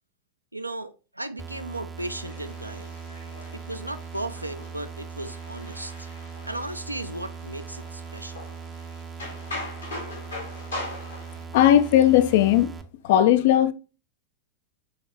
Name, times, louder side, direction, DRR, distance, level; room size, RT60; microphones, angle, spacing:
voice 1, 0.5-3.0 3.5-6.1 6.4-8.5, right 1 dB, 85° right, 0.3 m, -36 dB
sound 1, 1.4-12.8, right 6 dB, 15° right, 0.4 m, -40 dB
sound 2, 2.0-11.4, left 2 dB, 80° left, 1.5 m, -41 dB
voice 2, 11.5-12.7 13.0-13.7, left 11 dB, 50° left, 0.3 m, -17 dB
3.9 x 3.3 x 2.9 m
figure-of-eight pair, 90°, 0 cm